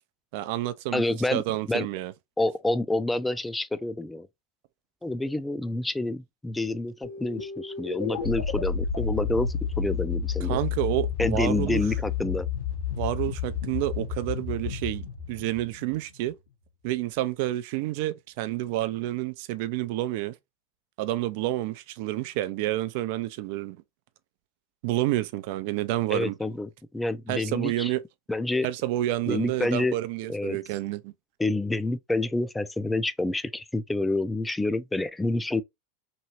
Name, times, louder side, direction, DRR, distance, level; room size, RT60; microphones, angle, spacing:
voice 1, 0.3-1.0 1.3-2.1 10.5-11.8 13.0-16.4 16.8-20.4 21.0-23.8 24.8-26.3 27.3-28.0 28.6-31.1, right 15 dB, 65° right, 0.4 m, -29 dB
voice 2, 0.9-1.4 1.7-1.9 2.4-4.3 5.0-10.6 11.2-12.5 26.1-27.9 28.3-28.7 29.3-30.0 30.3-30.6 31.4-35.6, left 2 dB, 10° left, 0.4 m, -28 dB
sound 1, 7.0-16.4, left 6 dB, 85° left, 1.1 m, -31 dB
3.0 x 2.7 x 2.8 m
hypercardioid pair, 95°, 0 cm